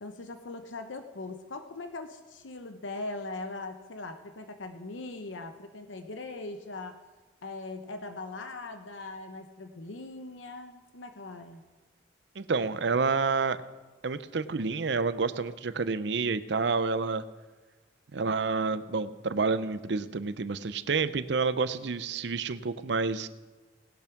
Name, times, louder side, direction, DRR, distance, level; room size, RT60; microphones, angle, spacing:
voice 1, 0.0-7.0 7.4-11.6, left 2 dB, 90° left, 7 dB, 0.8 m, -40 dB
voice 2, 12.4-13.6 14.0-17.2 18.1-23.3, right 4 dB, 65° right, 14 dB, 0.6 m, -29 dB
19.0 x 7.0 x 5.9 m, 1.2 s
head